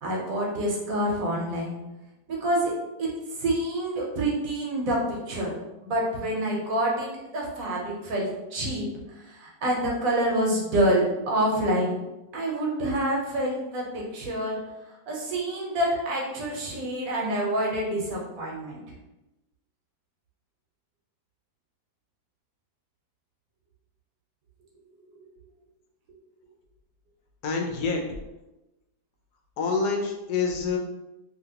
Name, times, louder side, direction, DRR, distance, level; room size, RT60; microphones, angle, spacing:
voice 1, 0.0-1.8 2.3-2.7 3.0-3.1 3.4-5.5 5.8-8.9 9.1-11.9 12.3-14.6 15.1-18.8, right 1 dB, 65° right, -2 dB, 1.1 m, -27 dB
voice 2, 27.4-28.0 29.6-30.8, left 4 dB, 90° left, 2 dB, 1.2 m, -26 dB
2.8 x 2.7 x 2.8 m, 0.98 s
omnidirectional pair, 1.7 m